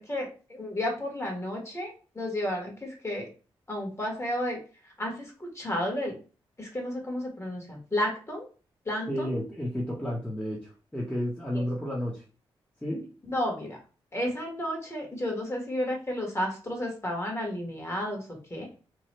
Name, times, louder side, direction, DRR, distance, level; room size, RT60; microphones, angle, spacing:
voice 1, 0.1-3.3 3.7-4.6 5.0-6.1 6.6-8.4 8.9-9.3 11.6-11.7 13.3-13.8 14.1-18.2 18.5-18.7, left 1 dB, 25° left, 1 dB, 1.4 m, -32 dB
voice 2, 9.1-12.2 12.8-13.1, equal, 10° left, -5 dB, 0.9 m, -32 dB
2.9 x 2.3 x 3.0 m, 0.35 s
cardioid pair, 60°, 10 cm